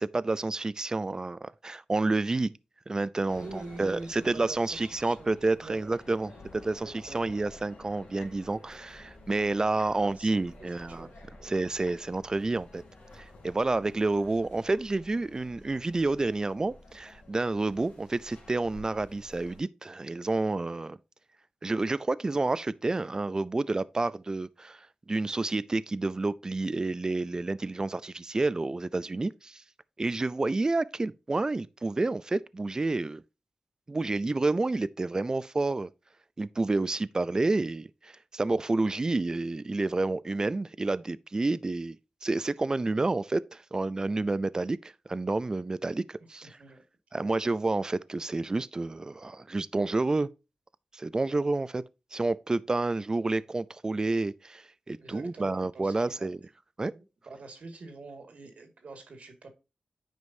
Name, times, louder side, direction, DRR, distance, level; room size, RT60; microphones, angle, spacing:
voice 1, 0.0-2.5 2.9-11.1 11.4-12.8 13.1-21.0 21.6-24.8 25.1-29.6 30.0-33.2 33.9-35.9 36.4-42.0 42.2-46.5 47.1-50.3 50.9-51.8 52.1-56.4 56.8-56.9, right 2 dB, 30° right, 0.4 m, -29 dB
sound 1, 3.3-19.6, left 2 dB, 80° left, 2.7 m, -52 dB
voice 2, 3.3-5.9 6.8-7.4 9.7-11.1 11.4-11.6 46.6-46.8 47.1-47.3 55.0-56.3 56.9-59.5, right 3 dB, 70° right, 1.9 m, -46 dB
9.5 x 5.1 x 2.7 m
wide cardioid pair, 85°, 2 cm